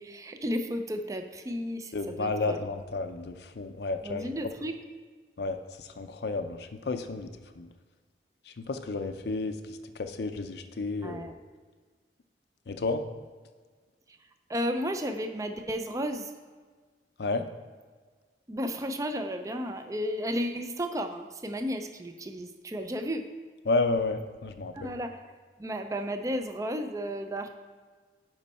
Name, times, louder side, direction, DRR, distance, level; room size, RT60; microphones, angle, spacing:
voice 1, 0.0-2.7 4.0-4.8 11.0-11.4 14.1-14.2 14.5-16.3 18.5-23.3 24.7-25.2 25.6-27.6, equal, 20° right, 7 dB, 0.4 m, -33 dB
voice 2, 1.9-4.3 5.4-7.3 7.6-7.7 8.5-9.6 10.0-11.3 12.7-13.0 17.2-17.4 23.7-24.9, left 3 dB, 65° left, 7 dB, 0.5 m, -31 dB
10.5 x 5.4 x 4.2 m, 1.5 s
head